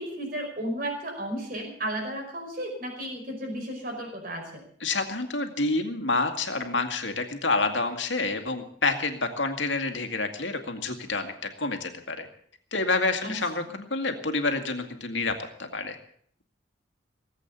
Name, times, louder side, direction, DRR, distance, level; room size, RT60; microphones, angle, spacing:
voice 1, 0.0-4.6 13.2-13.4, right 1 dB, 45° right, 2 dB, 5.3 m, -33 dB
voice 2, 4.8-11.3 11.6-12.3 12.7-16.0, left 3 dB, 70° left, 6 dB, 2.1 m, -28 dB
19.0 x 8.4 x 8.2 m, 0.63 s
head